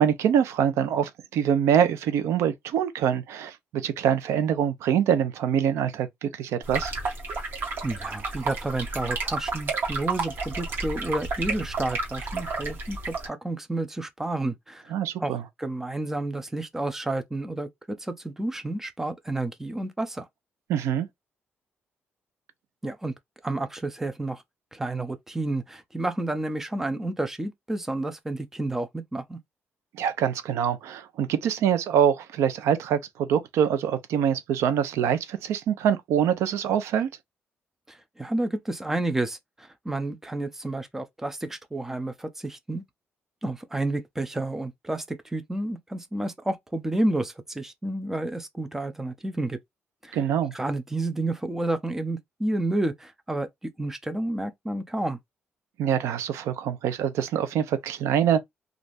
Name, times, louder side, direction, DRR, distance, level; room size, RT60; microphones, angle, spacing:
voice 1, 0.0-6.9 14.9-15.4 20.7-21.1 29.9-37.1 50.1-50.5 55.8-58.4, right 9 dB, 90° right, 0.6 m, -24 dB
sound 1, 6.6-13.3, right 3 dB, 50° right, 1.3 m, -31 dB
voice 2, 7.8-14.8 15.2-20.3 22.8-23.1 23.4-24.4 24.7-29.4 37.9-42.8 43.4-49.6 50.0-50.2 50.5-53.5 53.8-55.2, right 2 dB, 10° right, 0.5 m, -30 dB
3.3 x 2.5 x 2.5 m
cardioid pair, 155°, 5 cm